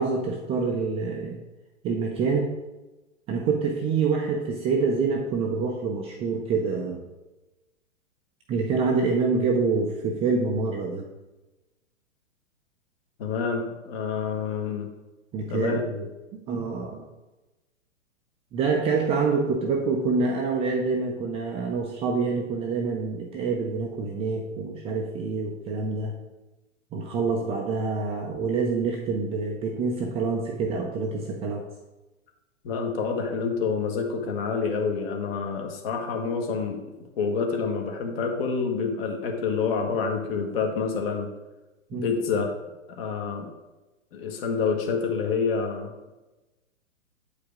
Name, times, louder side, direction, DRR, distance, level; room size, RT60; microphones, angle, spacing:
voice 1, 0.0-1.4 1.8-2.5 3.3-7.0 8.5-11.0 15.3-16.1 16.5-17.0 18.5-26.1 26.9-31.6 41.9-42.1, right 4 dB, 15° right, 0 dB, 0.5 m, -26 dB
voice 2, 13.2-14.9 15.5-15.9 32.6-36.8 37.2-41.3 41.9-42.5 43.0-43.5 44.1-46.1, left 5 dB, 45° left, 3 dB, 1.5 m, -27 dB
8.4 x 4.9 x 3.6 m, 1.1 s
hypercardioid pair, 125°, 39 cm